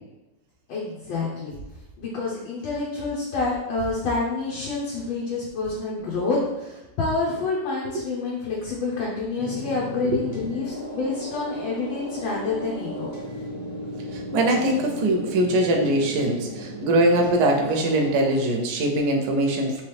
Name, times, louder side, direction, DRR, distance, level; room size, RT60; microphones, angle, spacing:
voice 1, 0.7-1.5 2.0-13.1, left 3 dB, 75° left, -5 dB, 1.5 m, -28 dB
sound 1, 9.4-18.3, equal, 20° left, 0.8 m, -35 dB
voice 2, 14.1-19.8, right 1 dB, 70° right, 1 dB, 1.1 m, -22 dB
3.8 x 3.0 x 3.3 m, 0.99 s
omnidirectional pair, 2.1 m